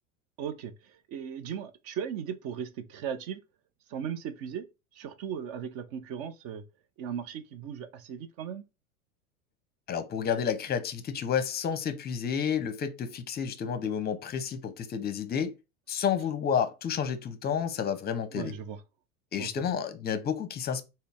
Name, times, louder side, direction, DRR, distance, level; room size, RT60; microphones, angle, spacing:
voice 1, 0.4-3.4 3.9-4.7 4.9-6.6 7.0-8.6 18.3-18.8 19.4-19.5, right 8 dB, 50° right, 0.6 m, -37 dB
voice 2, 9.9-15.5 15.9-18.5 19.3-20.8, left 7 dB, 25° left, 0.6 m, -30 dB
3.9 x 2.1 x 3.5 m
hypercardioid pair, 90°, 42 cm